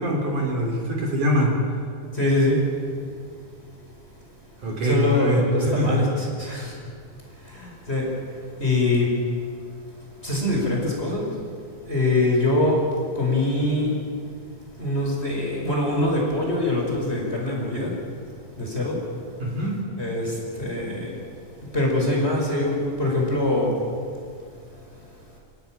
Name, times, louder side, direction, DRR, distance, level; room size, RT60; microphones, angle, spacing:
voice 1, 0.0-1.5 4.6-6.0 19.4-19.8, equal, 60° right, 0 dB, 5.4 m, -23 dB
voice 2, 2.1-2.7 4.8-6.8 7.4-9.2 10.2-11.4 11.8-14.0 14.8-18.0 18.6-19.0 20.0-21.1 21.7-23.8, left 2 dB, 15° left, -2 dB, 5.4 m, -24 dB
27.5 x 18.5 x 8.9 m, 2.3 s
omnidirectional pair, 4.2 m